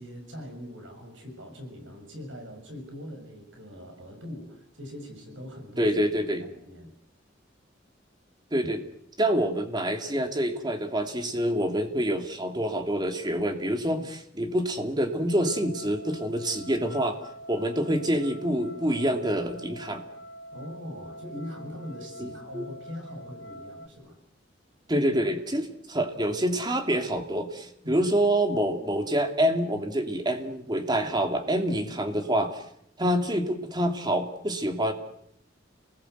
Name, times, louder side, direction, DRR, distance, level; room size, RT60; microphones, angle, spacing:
voice 1, 0.0-5.9 6.4-6.9 14.0-14.1 20.5-24.2 27.8-28.1 31.9-32.0, equal, 85° right, 4 dB, 6.8 m, -41 dB
voice 2, 5.8-6.4 8.5-8.8 9.2-17.2 17.5-20.1 22.2-22.6 24.9-32.6 33.0-34.9, right 1 dB, 20° right, 5 dB, 2.7 m, -27 dB
sound 1, 15.2-23.9, equal, 80° left, 2.5 m, -45 dB
29.5 x 20.5 x 8.1 m, 0.72 s
head